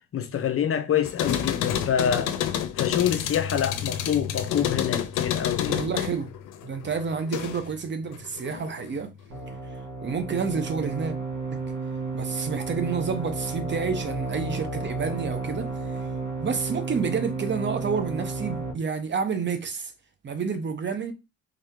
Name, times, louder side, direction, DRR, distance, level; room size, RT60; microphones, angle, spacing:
voice 1, 0.1-2.4 2.8-5.8, left 9 dB, 45° left, 0.7 m, -26 dB
sound 1, 1.0-7.8 8.1-9.0, left 10 dB, 85° left, 0.6 m, -29 dB
voice 2, 5.7-6.3 6.6-9.1 10.0-11.2 11.5-11.6 12.1-15.7 16.4-19.9 20.2-21.1, right 5 dB, 40° right, 0.8 m, -29 dB
sound 2, 9.3-18.7, right 3 dB, 70° right, 2.1 m, -32 dB
3.4 x 2.8 x 3.6 m
cardioid pair, 90°, 30 cm